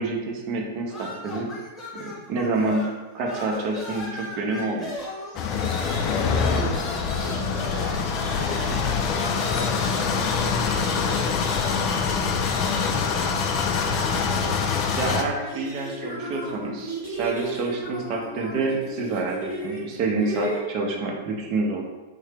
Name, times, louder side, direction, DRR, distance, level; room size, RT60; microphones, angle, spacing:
voice 1, 0.0-1.5 1.9-2.8 3.1-4.9 15.0-21.8, right 3 dB, 40° right, 0 dB, 0.6 m, -28 dB
sound 1, 0.9-3.0 3.2-15.2, left 1 dB, 15° left, 1.1 m, -37 dB
sound 2, 5.3-15.2, left 5 dB, 35° left, 0.3 m, -25 dB
voice 2, 6.0-12.5 12.8-13.6, left 1 dB, 65° left, 0 dB, 0.7 m, -38 dB
sound 3, 14.2-20.6, right 2 dB, 55° right, 1.2 m, -35 dB
3.2 x 2.7 x 3.4 m, 1.1 s
figure-of-eight pair, 95°, 0 cm